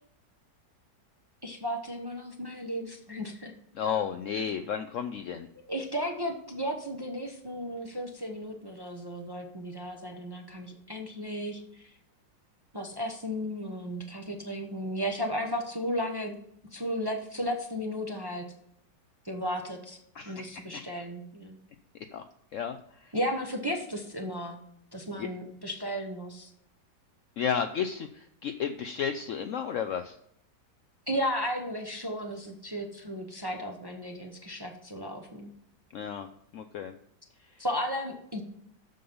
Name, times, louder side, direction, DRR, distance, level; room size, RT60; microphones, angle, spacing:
voice 1, 1.4-3.5 4.3-4.5 5.7-11.9 12.7-16.4 16.7-18.5 19.2-20.0 20.3-21.6 23.1-24.6 24.9-26.5 31.1-35.5 37.6-38.4, equal, 20° right, 2 dB, 0.6 m, -34 dB
voice 2, 3.7-5.5 20.1-20.6 22.1-22.2 22.5-23.1 25.2-25.3 27.4-30.2 35.9-36.3 36.5-36.9 37.4-37.6, left 7 dB, 90° left, 8 dB, 0.6 m, -33 dB
7.7 x 6.8 x 5.4 m, 0.72 s
omnidirectional pair, 1.9 m